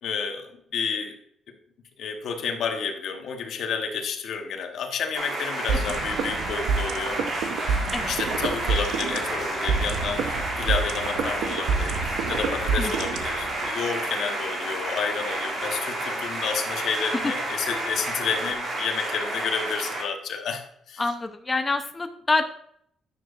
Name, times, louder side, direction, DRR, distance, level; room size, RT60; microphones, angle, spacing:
voice 1, 0.0-1.2 2.0-7.2 8.1-21.0, left 6 dB, 70° left, 4 dB, 1.1 m, -30 dB
sound 1, 5.1-20.0, right 1 dB, 55° right, 2.4 m, -30 dB
sound 2, 5.7-13.7, right 5 dB, 85° right, 0.7 m, -28 dB
sound 3, 8.8-18.6, left 4 dB, 45° left, 1.4 m, -47 dB
voice 2, 21.0-22.4, left 3 dB, 20° left, 6 dB, 0.7 m, -26 dB
10.0 x 6.3 x 2.5 m, 0.70 s
cardioid pair, 90°, 0 cm